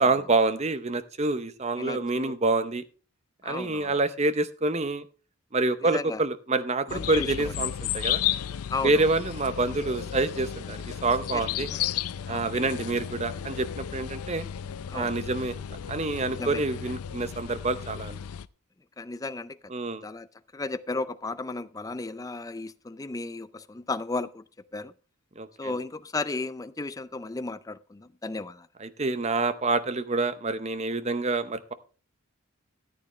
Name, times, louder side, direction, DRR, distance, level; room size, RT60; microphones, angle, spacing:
voice 1, 0.0-2.8 3.4-5.0 5.5-8.2 8.8-11.7 12.3-14.4 14.9-15.5 15.9-18.2 19.7-20.0 25.4-25.7 28.8-31.7, right 3 dB, 30° right, 0.7 m, -27 dB
voice 2, 1.8-2.4 3.4-3.9 5.8-6.2 6.9-7.5 8.7-9.0 11.3-11.8 12.3-12.7 14.9-15.2 16.3-16.6 19.0-19.6 20.0-20.3 20.5-24.4 24.7-24.9 25.6-28.7, left 3 dB, 15° left, 0.4 m, -34 dB
sound 1, 6.9-18.5, left 10 dB, 90° left, 0.4 m, -33 dB
13.5 x 8.9 x 3.2 m
head